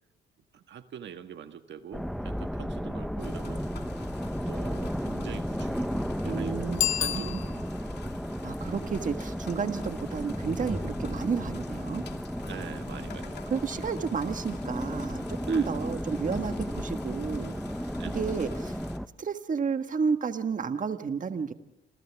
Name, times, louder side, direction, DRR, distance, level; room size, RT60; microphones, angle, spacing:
voice 1, 0.5-3.7 4.5-6.7 7.0-7.7 8.7-8.9 12.5-13.5 15.4-15.7 16.6-16.8 18.0-18.2, right 8 dB, 65° right, 8 dB, 1.6 m, -44 dB
sound 1, 1.9-19.1, equal, ahead, 0.9 m, -34 dB
sound 2, 3.2-19.0, left 7 dB, 55° left, 2.7 m, -49 dB
voice 2, 6.2-7.0 7.3-7.4 8.4-12.0 13.5-17.5 18.1-18.8 19.2-21.5, right 5 dB, 40° right, 8 dB, 1.6 m, -31 dB
Bicycle bell, 6.7-8.0, left 11 dB, 75° left, 1.5 m, -30 dB
28.5 x 27.5 x 3.5 m, 0.89 s
cardioid pair, 90°, 20 cm